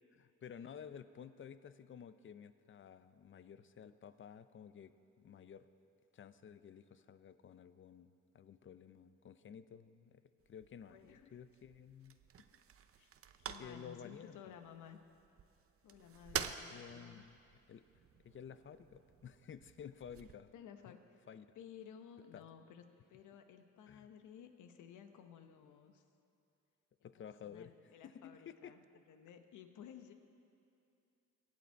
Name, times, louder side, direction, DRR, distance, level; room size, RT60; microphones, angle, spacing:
voice 1, 0.2-5.7 6.1-10.2 10.5-12.2 13.6-14.5 16.3-17.3 17.7-17.9 18.2-20.5 20.8-20.9 21.3-21.5 22.3-22.5 23.9-24.1 27.0-28.7, left 8 dB, 40° left, 13 dB, 0.6 m, -53 dB
sound 1, 10.4-20.3, right 8 dB, 50° right, 0.7 m, -49 dB
voice 2, 10.8-11.4 12.4-12.5 13.0-15.0 15.8-17.2 20.5-21.0 21.5-26.0 27.0-30.1, left 8 dB, 80° left, 7 dB, 1.1 m, -56 dB
22.5 x 8.6 x 4.6 m, 2.6 s
cardioid pair, 90°, 30 cm